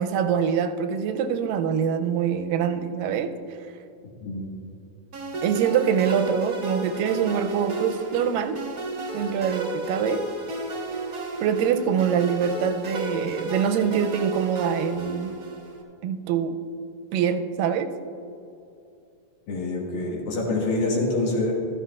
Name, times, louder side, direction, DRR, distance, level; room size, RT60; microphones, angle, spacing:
voice 1, 0.0-3.3 5.4-8.6 9.1-10.3 11.4-15.4 16.0-16.6 17.1-17.9, right 7 dB, 85° right, 8 dB, 2.2 m, -24 dB
sound 1, 5.1-15.8, right 2 dB, 55° right, 1.0 m, -33 dB
voice 2, 19.5-21.5, left 2 dB, 80° left, -3 dB, 3.6 m, -26 dB
14.0 x 13.0 x 2.4 m, 2.7 s
omnidirectional pair, 3.9 m